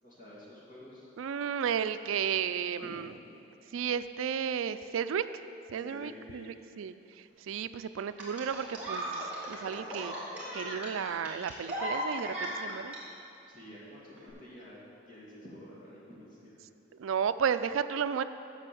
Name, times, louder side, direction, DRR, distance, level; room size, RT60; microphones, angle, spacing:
voice 1, 0.0-1.1 2.8-3.0 5.8-6.5 13.5-16.6, left 1 dB, 40° left, -7 dB, 2.5 m, -49 dB
voice 2, 1.2-3.1 3.7-5.4 5.7-10.2 10.5-13.0 17.0-18.2, right 7 dB, 85° right, 12 dB, 0.4 m, -33 dB
sound 1, 8.2-13.0 14.2-14.3, equal, 5° right, 2.0 m, -36 dB
9.0 x 6.7 x 6.9 m, 2.7 s
head